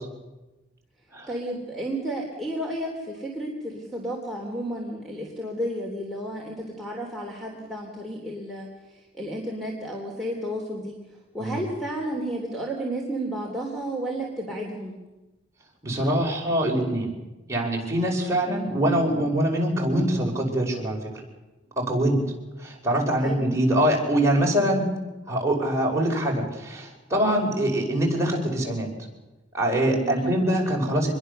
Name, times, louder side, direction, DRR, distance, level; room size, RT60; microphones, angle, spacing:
voice 1, 1.3-8.7 8.9-10.9 11.3-15.0 18.4-18.8 23.2-23.4 30.0-30.3, right 1 dB, ahead, -1 dB, 3.2 m, -32 dB
voice 2, 15.8-17.1 17.5-21.1 21.8-22.2 22.6-24.9 25.3-28.9 29.5-31.1, right 1 dB, 15° right, -1 dB, 5.3 m, -24 dB
25.5 x 21.5 x 6.8 m, 1.1 s
head